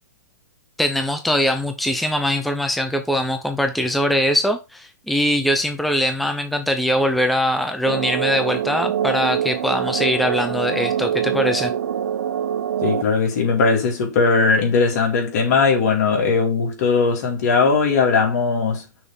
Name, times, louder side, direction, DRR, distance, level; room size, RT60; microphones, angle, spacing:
voice 1, 0.8-11.7, equal, ahead, 0.6 m, -22 dB
sound 1, 7.9-13.0, right 9 dB, 75° right, 0.7 m, -24 dB
voice 2, 12.8-18.8, left 4 dB, 60° left, 2.6 m, -19 dB
6.1 x 3.6 x 5.2 m
hypercardioid pair, 125°, 10 cm